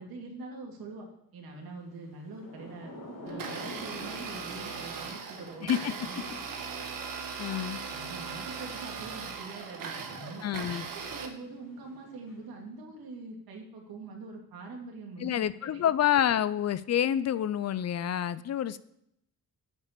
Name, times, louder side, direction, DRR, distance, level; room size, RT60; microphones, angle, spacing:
voice 1, 0.0-2.9 3.2-6.5 7.6-10.4 10.9-15.8, right 3 dB, 80° right, 1 dB, 2.7 m, -44 dB
Thunder / Rain, 2.2-12.7, equal, 65° left, 3.8 m, -49 dB
Domestic sounds home sounds, 3.3-11.3, right 5 dB, 65° right, 1.6 m, -39 dB
voice 2, 5.6-5.9 7.4-7.8 10.4-10.9 15.2-18.8, left 10 dB, 45° left, 17 dB, 0.5 m, -28 dB
9.0 x 5.9 x 6.8 m, 0.76 s
cardioid pair, 125°, 36 cm